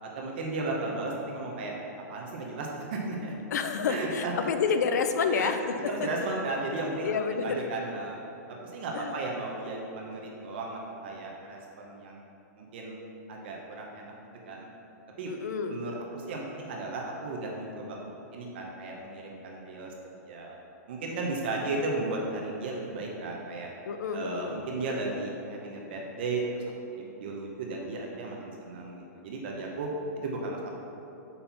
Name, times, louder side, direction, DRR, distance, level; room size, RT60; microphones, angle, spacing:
voice 1, 0.0-1.7 2.1-3.3 3.9-4.3 5.3-5.5 5.9-7.1 7.4-8.2 8.5-12.3 12.6-13.0 13.3-14.1 14.5-14.7 15.2-15.3 15.7-20.5 20.9-23.7 24.1-26.6 26.9-29.9 30.2-30.7, right 2 dB, 35° right, -1 dB, 0.7 m, -35 dB
voice 2, 3.5-6.1 7.0-7.6 8.9-9.2 15.3-15.8 23.9-24.6, left 6 dB, 80° left, 8 dB, 0.5 m, -29 dB
5.4 x 4.3 x 5.7 m, 2.9 s
hypercardioid pair, 180°, 9 cm